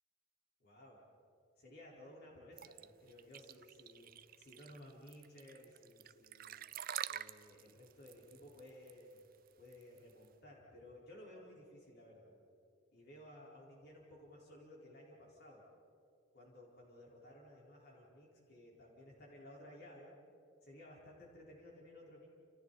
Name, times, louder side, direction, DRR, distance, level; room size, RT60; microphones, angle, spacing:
voice 1, 0.6-1.0 1.6-6.5 7.1-9.3 9.6-12.3 12.9-15.6 16.3-20.1 20.6-22.3, left 1 dB, 50° left, -4 dB, 4.6 m, -57 dB
sound 1, 2.6-10.3, right 10 dB, 45° right, 0.5 m, -47 dB
30.0 x 29.5 x 4.2 m, 2.6 s
head